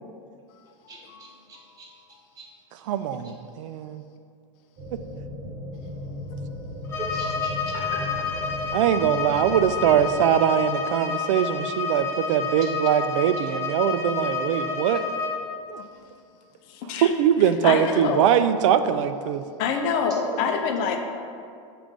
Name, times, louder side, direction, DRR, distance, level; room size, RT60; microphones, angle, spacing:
voice 1, 0.9-1.9 2.4-2.5 7.0-8.0 12.6-12.7 20.3-20.5, right 3 dB, 20° right, -4 dB, 1.2 m, -40 dB
voice 2, 2.9-4.0 8.7-15.0 15.7-15.8 17.0-19.4, right 9 dB, 75° right, 11 dB, 0.4 m, -22 dB
sound 1, 4.8-10.3, left 1 dB, 40° right, 1.1 m, -36 dB
Bowed string instrument, 6.8-15.4, left 5 dB, 15° left, 0.8 m, -30 dB
voice 3, 17.6-18.3 19.6-21.0, left 6 dB, 50° left, 4 dB, 0.6 m, -26 dB
7.2 x 2.6 x 5.1 m, 2.3 s
supercardioid pair, 135°, 17 cm